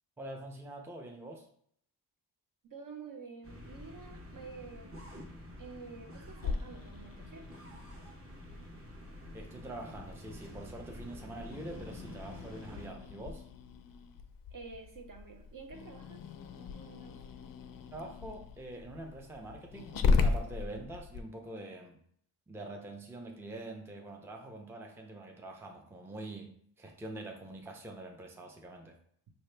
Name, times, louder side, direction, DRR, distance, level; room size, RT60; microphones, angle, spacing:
voice 1, 0.2-1.5 9.3-13.4 17.9-22.0 22.5-29.0, right 1 dB, 5° right, 2 dB, 0.5 m, -45 dB
voice 2, 2.7-5.1 5.6-7.6 14.5-16.2 16.5-17.2, right 4 dB, 50° right, 4 dB, 0.9 m, -49 dB
sound 1, 3.4-12.9, equal, 30° right, 1.1 m, -49 dB
Growling, 6.4-21.2, left 4 dB, 55° left, 0.5 m, -37 dB
5.6 x 2.8 x 3.3 m, 0.64 s
wide cardioid pair, 120°, 42 cm